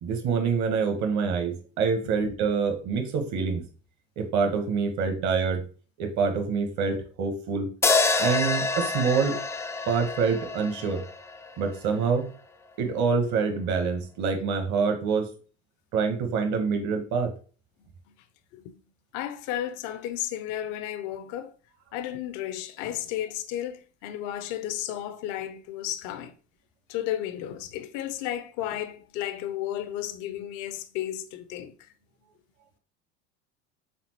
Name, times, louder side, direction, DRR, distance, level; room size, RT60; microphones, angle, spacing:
voice 1, 0.0-3.7 4.2-5.6 6.0-7.7 8.2-9.4 9.9-11.0 11.6-12.3 12.8-15.3 15.9-17.3, right 5 dB, 55° right, 1.1 m, -26 dB
sound 1, 7.8-12.1, left 3 dB, 10° left, 0.3 m, -27 dB
voice 2, 19.1-21.5 21.9-26.3 26.9-31.9, left 12 dB, 60° left, 0.6 m, -33 dB
4.3 x 3.7 x 2.9 m
hypercardioid pair, 80°, 34 cm